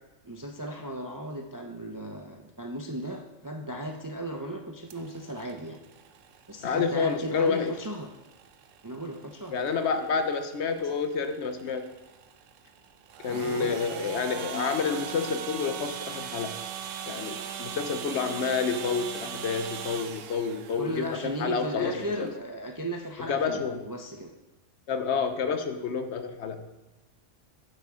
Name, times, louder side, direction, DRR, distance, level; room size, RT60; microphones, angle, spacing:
voice 1, 0.2-5.8 6.5-8.1 8.8-9.6 10.8-10.9 13.3-13.8 20.8-24.3, right 1 dB, 25° right, 2 dB, 0.4 m, -36 dB
sound 1, 4.9-22.4, right 8 dB, 80° right, 1.0 m, -41 dB
voice 2, 6.6-7.7 9.5-11.9 13.2-16.6 17.1-22.3 23.3-23.8 24.9-26.6, left 5 dB, 65° left, 9 dB, 1.0 m, -29 dB
9.1 x 7.6 x 3.7 m, 1.0 s
omnidirectional pair, 1.3 m